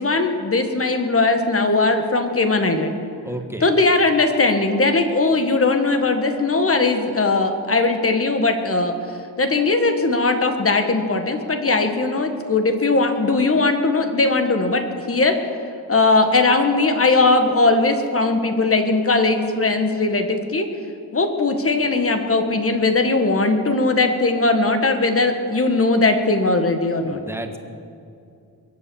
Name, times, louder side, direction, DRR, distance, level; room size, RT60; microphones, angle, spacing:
voice 1, 0.0-2.9 3.6-8.9 9.4-15.4 15.9-20.7 21.1-27.2, left 3 dB, 35° left, 6 dB, 1.5 m, -19 dB
voice 2, 3.2-3.7 27.0-27.6, right 1 dB, 5° right, 6 dB, 1.3 m, -31 dB
22.5 x 8.5 x 7.0 m, 2.5 s
wide cardioid pair, 105°, 39 cm